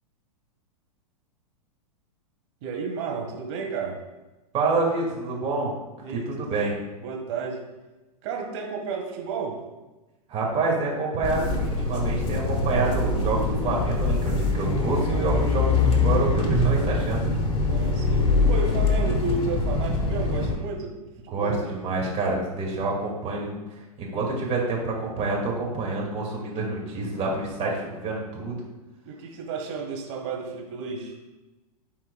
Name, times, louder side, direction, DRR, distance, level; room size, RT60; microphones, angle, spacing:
voice 1, 2.6-4.0 6.0-6.3 7.0-7.6 8.2-9.6 17.6-20.9 21.3-21.6 29.0-31.1, right 4 dB, 50° right, 1 dB, 1.7 m, -32 dB
voice 2, 4.5-5.7 6.1-6.7 10.3-17.4 21.3-23.6 24.0-28.6, right 3 dB, 30° right, -2 dB, 2.2 m, -27 dB
sound 1, 11.2-20.5, left 3 dB, 30° left, 1.2 m, -23 dB
12.5 x 4.4 x 2.4 m, 1.1 s
hypercardioid pair, 105°, 20 cm